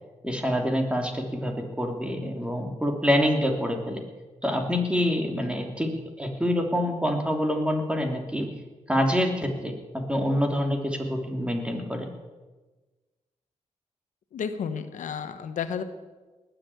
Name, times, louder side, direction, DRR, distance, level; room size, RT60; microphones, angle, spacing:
voice 1, 0.2-4.0 4.4-5.9 6.2-8.5 8.9-12.1, equal, 10° right, 3 dB, 3.1 m, -26 dB
voice 2, 14.3-15.8, left 7 dB, 85° left, 9 dB, 1.1 m, -32 dB
19.5 x 7.8 x 8.6 m, 1.3 s
cardioid pair, 70°, 13 cm